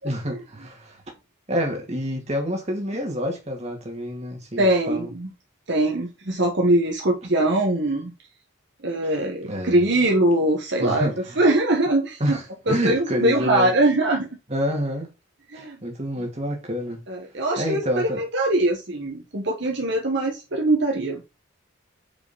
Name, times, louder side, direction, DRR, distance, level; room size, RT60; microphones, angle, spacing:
voice 1, 0.0-1.0 1.5-5.1 9.4-9.8 10.8-11.4 12.2-13.7 14.5-15.1 15.5-17.0 17.6-18.2, equal, 35° right, 2.2 m, -28 dB
voice 2, 4.6-5.3 5.7-8.1 8.8-11.1 11.4-12.4 12.7-14.3 15.5-15.8 17.1-21.2, right 1 dB, 60° right, 1.2 m, -22 dB
5.3 x 4.9 x 5.4 m
head